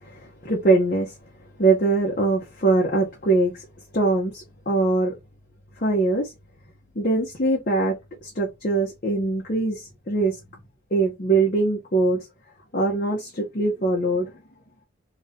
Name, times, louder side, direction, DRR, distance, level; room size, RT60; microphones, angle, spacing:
voice 1, 0.0-1.1 1.6-3.6 3.9-5.2 5.8-6.3 6.9-10.4 10.9-12.3 12.7-14.3, right 3 dB, 45° left, 0.9 m, -22 dB
3.1 x 2.7 x 3.6 m
head